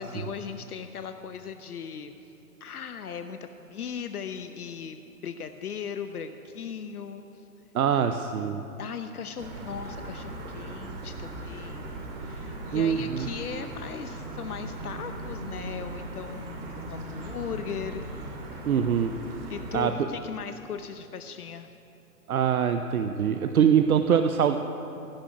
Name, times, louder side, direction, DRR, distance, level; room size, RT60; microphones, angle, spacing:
voice 1, 0.0-2.1 2.6-7.4 7.9-8.2 8.8-18.1 19.5-21.7, left 7 dB, 70° left, 8 dB, 0.8 m, -38 dB
voice 2, 7.7-8.6 12.7-13.3 18.7-19.1 19.7-20.1 22.3-24.6, right 8 dB, 65° right, 8 dB, 0.7 m, -23 dB
sound 1, 9.4-19.9, right 1 dB, 40° right, 2.5 m, -38 dB
16.5 x 6.1 x 9.4 m, 2.9 s
figure-of-eight pair, 130°, 46 cm